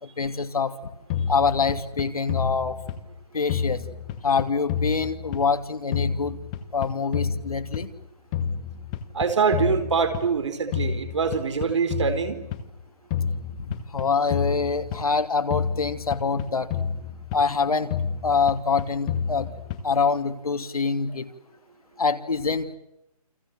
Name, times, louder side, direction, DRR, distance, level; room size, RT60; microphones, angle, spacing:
voice 1, 0.0-0.7 1.3-2.8 3.3-3.8 4.2-6.4 6.7-7.9 13.9-16.7 17.3-18.0 18.2-19.5 19.8-21.3 22.0-22.7, left 5 dB, 65° left, 8 dB, 3.0 m, -25 dB
sound 1, 1.1-3.2 3.5-5.6 5.9-8.0 8.3-10.4 10.7-12.7 13.1-15.2 15.5-17.6 17.9-20.0, left 7 dB, 10° left, 1.0 m, -30 dB
voice 2, 9.1-12.4, right 5 dB, 50° right, 9 dB, 4.6 m, -24 dB
29.5 x 25.0 x 7.7 m, 0.89 s
hypercardioid pair, 170°, 20 cm